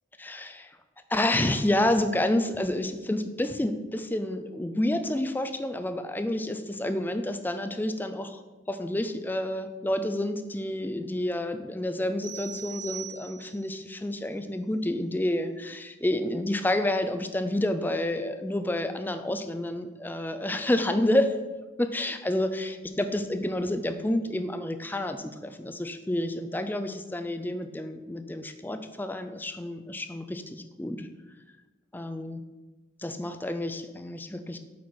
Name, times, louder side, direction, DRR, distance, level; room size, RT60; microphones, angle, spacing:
voice 1, 0.2-0.7 1.1-8.4 8.7-21.4 21.8-31.1 31.9-32.4 33.0-34.6, left 1 dB, 10° left, 8 dB, 0.4 m, -29 dB
sound 1, 12.2-13.8, right 8 dB, 75° right, 1.4 m, -41 dB
8.1 x 4.7 x 4.3 m, 1.2 s
head